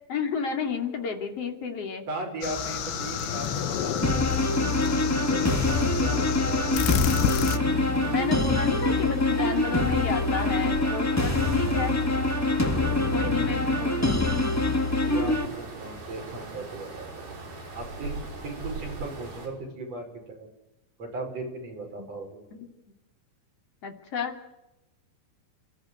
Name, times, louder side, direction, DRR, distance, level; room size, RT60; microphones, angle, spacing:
voice 1, 0.1-2.0 8.0-12.0 13.1-14.3 22.0-22.1 22.5-22.7 23.8-24.4, left 5 dB, 45° left, 4 dB, 3.5 m, -31 dB
voice 2, 2.1-4.6 5.3-7.0 15.0-17.3 17.7-20.5 21.0-22.5, right 2 dB, 45° right, 2 dB, 6.6 m, -37 dB
sound 1, 2.4-7.6, left 9 dB, 85° left, 3.1 m, -29 dB
sound 2, 2.5-19.5, right 3 dB, 70° right, 7.4 m, -40 dB
sound 3, 4.0-15.4, left 2 dB, 10° left, 0.8 m, -25 dB
29.5 x 14.0 x 9.5 m, 0.96 s
omnidirectional pair, 4.3 m